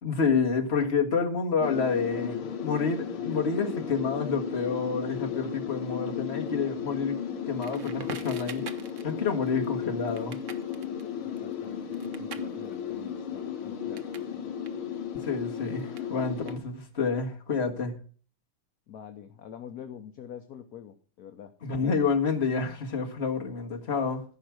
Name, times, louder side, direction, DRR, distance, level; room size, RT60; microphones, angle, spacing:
voice 1, 0.0-8.7 9.0-10.4 15.1-17.9 21.6-24.2, left 5 dB, 30° left, 1.7 m, -29 dB
sound 1, 1.6-16.6, left 8 dB, 75° left, 2.2 m, -35 dB
Crackle, 7.6-14.3 14.6-17.0, right 7 dB, 60° right, 0.8 m, -46 dB
voice 2, 11.3-14.5 18.9-21.5, left 9 dB, 55° left, 1.2 m, -46 dB
15.0 x 5.4 x 6.3 m
omnidirectional pair, 2.4 m